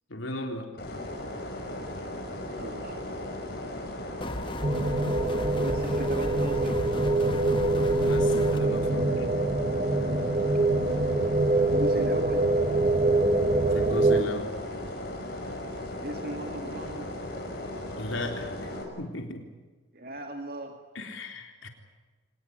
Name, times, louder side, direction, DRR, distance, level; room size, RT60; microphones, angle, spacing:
voice 1, 0.1-0.7 8.0-9.2 13.7-14.5 18.0-18.5 19.0-19.4 21.0-21.7, left 1 dB, 90° left, 4 dB, 3.8 m, -35 dB
sound 1, 0.8-18.8, left 1 dB, 55° left, 5.6 m, -37 dB
voice 2, 2.6-3.0 5.6-6.8 10.4-10.5 11.7-12.5 16.0-17.1 19.9-20.8, right 1 dB, 50° right, 4 dB, 2.3 m, -37 dB
sound 2, 4.2-8.6, left 1 dB, 25° left, 1.2 m, -36 dB
sound 3, 4.6-14.2, right 2 dB, 35° right, 1.3 m, -25 dB
25.5 x 20.0 x 9.7 m, 1.3 s
head